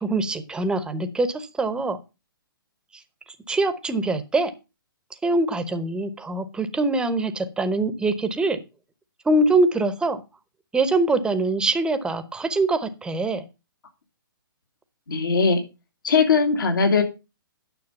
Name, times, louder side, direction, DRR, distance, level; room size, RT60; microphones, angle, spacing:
voice 1, 0.0-2.0 3.5-4.5 5.2-8.6 9.2-10.2 10.7-13.4, right 2 dB, 5° right, 11 dB, 0.9 m, -23 dB
voice 2, 15.1-15.6 16.0-17.0, left 5 dB, 65° left, 5 dB, 2.4 m, -19 dB
9.7 x 6.4 x 5.4 m, 0.28 s
figure-of-eight pair, 125°, 12 cm